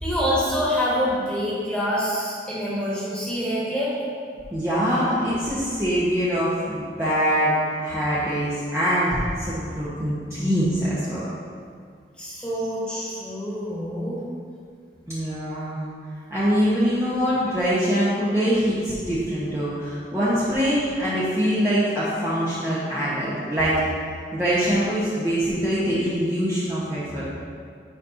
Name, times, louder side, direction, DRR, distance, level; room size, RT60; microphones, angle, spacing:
voice 1, 0.0-3.9 12.2-14.2, equal, 5° left, -8 dB, 1.7 m, -26 dB
voice 2, 4.5-11.2 15.1-15.8 16.3-23.8 24.3-27.2, equal, 15° right, -11 dB, 1.1 m, -23 dB
9.7 x 5.3 x 2.7 m, 2.2 s
head